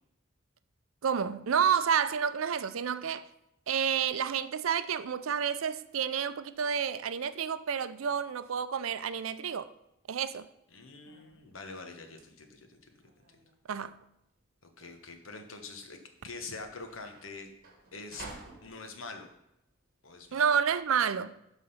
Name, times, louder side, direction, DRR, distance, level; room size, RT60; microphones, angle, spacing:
voice 1, 1.0-3.3 3.7-9.7 10.1-10.5 13.7-14.0 20.3-21.3, right 7 dB, 80° right, 0.5 m, -29 dB
voice 2, 10.7-12.8 14.8-16.0 16.2-17.5 17.9-18.3 18.6-19.3 20.0-20.4, left 3 dB, 75° left, 1.3 m, -44 dB
sound 1, 10.7-20.7, right 2 dB, 50° right, 1.8 m, -53 dB
12.0 x 4.0 x 5.6 m
head